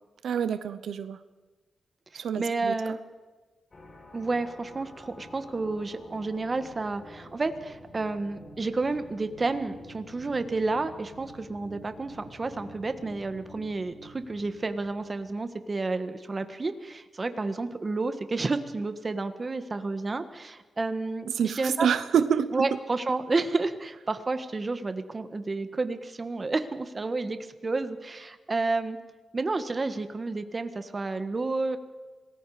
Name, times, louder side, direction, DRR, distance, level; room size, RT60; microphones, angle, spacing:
voice 1, 0.2-1.2 2.1-2.8 21.3-22.7, right 8 dB, 85° right, 11 dB, 0.9 m, -27 dB
voice 2, 2.1-3.0 4.1-21.9 22.5-29.0 29.3-31.8, right 3 dB, 30° right, 9 dB, 1.6 m, -30 dB
sound 1, 3.7-15.5, equal, 35° left, 5.1 m, -49 dB
27.0 x 20.0 x 5.0 m, 1.3 s
wide cardioid pair, 105°, 0 cm